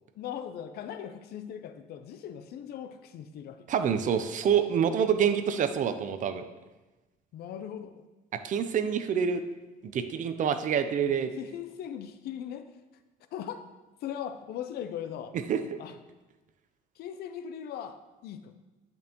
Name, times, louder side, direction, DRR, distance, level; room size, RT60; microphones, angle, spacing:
voice 1, 0.1-3.7 7.3-8.0 11.1-12.7 13.3-13.7 14.0-15.4 15.8-16.0 17.0-18.5, left 9 dB, 70° left, 10 dB, 0.6 m, -39 dB
voice 2, 3.7-6.4 8.3-9.4 9.8-11.3 15.5-15.6, right 8 dB, 50° right, 10 dB, 0.5 m, -27 dB
9.3 x 5.3 x 3.0 m, 1.1 s
cardioid pair, 110°, 17 cm